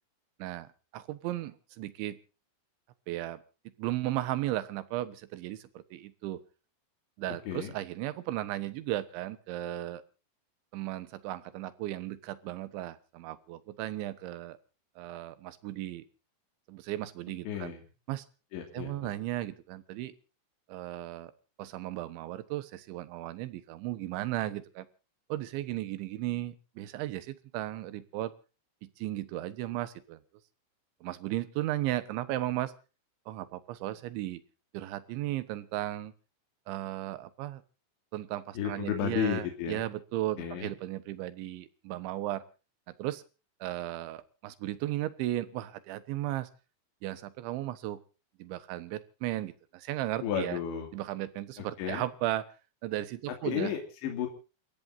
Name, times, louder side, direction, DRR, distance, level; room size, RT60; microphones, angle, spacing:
voice 1, 0.4-2.2 3.1-3.4 3.8-6.4 7.2-10.0 10.7-14.6 15.0-16.0 16.7-17.7 18.1-18.3 18.7-20.1 20.7-21.3 21.6-24.9 25.3-28.3 28.8-30.2 31.0-32.7 33.3-34.4 34.7-36.1 36.7-37.6 38.1-42.4 42.9-43.2 43.6-46.5 47.0-48.0 48.4-50.6 50.9-52.5 52.8-53.7, right 15 dB, 90° right, 14 dB, 3.6 m, -35 dB
voice 2, 7.3-7.7 17.4-17.8 18.5-19.1 38.6-39.8 40.4-40.7 50.2-50.9 51.6-52.0 53.4-54.3, left 8 dB, 80° left, 3 dB, 4.9 m, -33 dB
29.0 x 14.5 x 2.7 m, 0.35 s
omnidirectional pair, 5.2 m